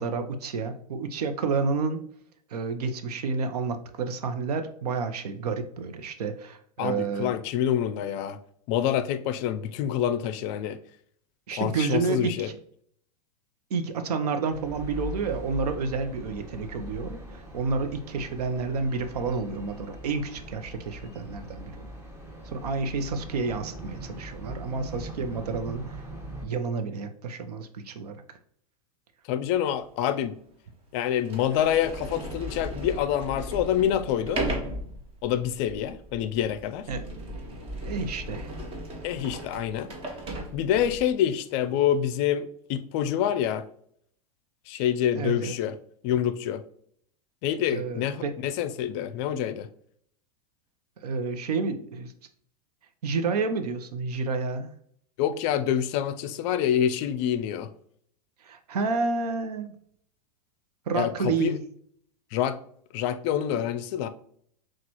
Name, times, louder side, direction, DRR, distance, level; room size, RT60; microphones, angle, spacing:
voice 1, 0.0-2.0 2.5-7.3 11.5-12.5 13.7-21.8 22.5-26.0 26.4-28.2 36.9-37.0 37.8-38.5 45.1-45.6 47.7-48.3 51.0-52.1 53.0-54.7 58.4-59.7 60.9-61.6, right 4 dB, 80° right, 0.7 m, -30 dB
voice 2, 6.8-8.4 8.7-10.8 11.5-12.5 29.3-30.4 30.9-34.4 35.2-36.9 39.0-39.9 40.5-43.6 44.7-45.7 46.0-46.6 47.4-49.7 55.2-57.7 60.9-61.5 62.3-62.6 62.9-64.1, left 10 dB, 50° left, 0.5 m, -27 dB
sound 1, 14.5-26.5, right 1 dB, 10° right, 1.1 m, -41 dB
Sliding door, 29.8-29.9 30.7-30.8 31.2-41.1, right 1 dB, 30° right, 1.3 m, -36 dB
6.0 x 2.4 x 2.9 m
hypercardioid pair, 115°, 20 cm